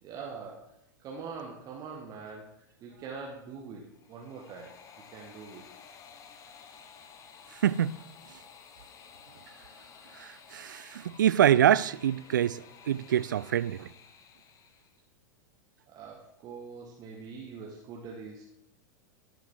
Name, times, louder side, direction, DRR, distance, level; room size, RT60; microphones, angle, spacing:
voice 1, 0.0-0.7 1.0-5.6 8.7-8.8 10.1-10.2 10.5-10.9 15.9-18.4, right 5 dB, 35° right, 1.6 m, -44 dB
sound 1, 3.9-15.0, left 7 dB, 30° left, 1.0 m, -53 dB
voice 2, 7.5-8.0 10.1-13.9, right 10 dB, 70° right, 0.4 m, -26 dB
16.0 x 5.7 x 3.7 m
figure-of-eight pair, 90°, 11 cm